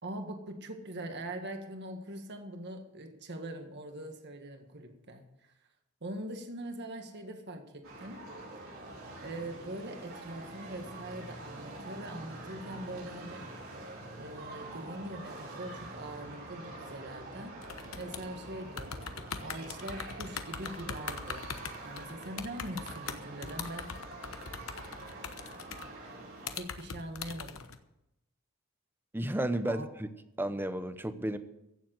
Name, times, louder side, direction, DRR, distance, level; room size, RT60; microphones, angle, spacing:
voice 1, 0.0-5.5 6.0-8.3 9.2-13.5 14.2-17.6 18.0-19.0 19.4-21.4 21.8-24.0 26.5-27.7 29.7-29.9, right 1 dB, 55° right, 5 dB, 1.8 m, -42 dB
sound 1, 7.8-26.6, right 2 dB, 70° right, 6.3 m, -46 dB
sound 2, 17.6-18.5 18.8-26.1 26.5-27.8, left 6 dB, 75° left, 1.1 m, -41 dB
voice 2, 29.1-30.1 30.4-31.4, right 1 dB, 10° right, 11 dB, 0.8 m, -32 dB
16.0 x 7.6 x 7.7 m, 0.88 s
head